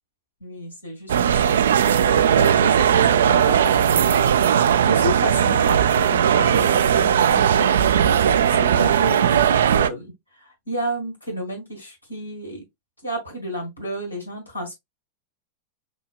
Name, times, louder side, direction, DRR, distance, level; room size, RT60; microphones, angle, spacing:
voice 1, 0.4-1.6 2.0-12.6 13.0-14.7, equal, 85° left, 1.8 m, -31 dB
sound 1, 1.1-9.9, right 9 dB, 70° right, 0.3 m, -18 dB
6.1 x 2.2 x 2.3 m
figure-of-eight pair, 90°, 0 cm